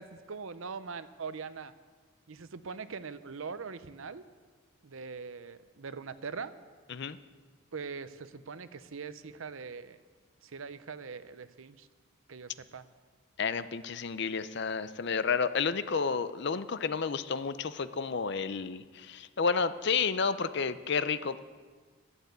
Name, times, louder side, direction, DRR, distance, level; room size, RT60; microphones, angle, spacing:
voice 1, 0.0-1.7 2.3-4.2 4.8-6.5 7.7-10.0 10.4-11.9 12.3-12.8, right 5 dB, 70° right, 13 dB, 0.7 m, -42 dB
voice 2, 13.4-21.4, left 5 dB, 55° left, 13 dB, 0.6 m, -31 dB
12.0 x 10.5 x 8.1 m, 1.5 s
head